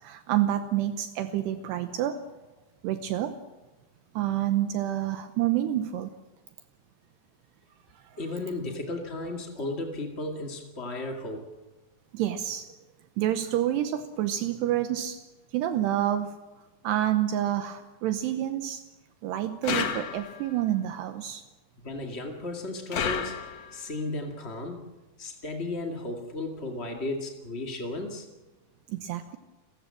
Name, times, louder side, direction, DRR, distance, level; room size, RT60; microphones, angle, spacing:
voice 1, 0.0-2.2 2.8-3.4 4.1-6.1 12.1-12.7 13.2-15.2 15.5-16.4 16.8-18.8 19.2-21.4 28.9-29.4, right 12 dB, 75° right, 9 dB, 2.9 m, -28 dB
voice 2, 8.2-11.5 21.8-23.4 23.7-24.9 25.2-28.3, left 2 dB, 45° left, 3 dB, 0.8 m, -34 dB
sound 1, 19.6-20.5 22.9-23.8, left 7 dB, 60° left, 1.7 m, -31 dB
29.0 x 15.5 x 7.6 m, 1.2 s
omnidirectional pair, 5.1 m